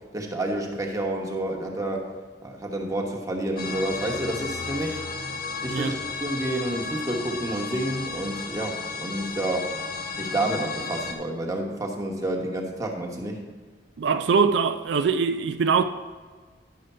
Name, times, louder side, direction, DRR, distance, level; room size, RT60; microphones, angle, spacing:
voice 1, 0.1-2.1 2.4-5.0 5.6-9.7 10.2-13.4, right 1 dB, 20° right, 1.1 m, -29 dB
sound 1, 3.6-11.1, left 4 dB, 55° left, 1.0 m, -33 dB
voice 2, 14.0-15.8, right 5 dB, 75° right, 0.4 m, -22 dB
10.5 x 5.0 x 5.5 m
head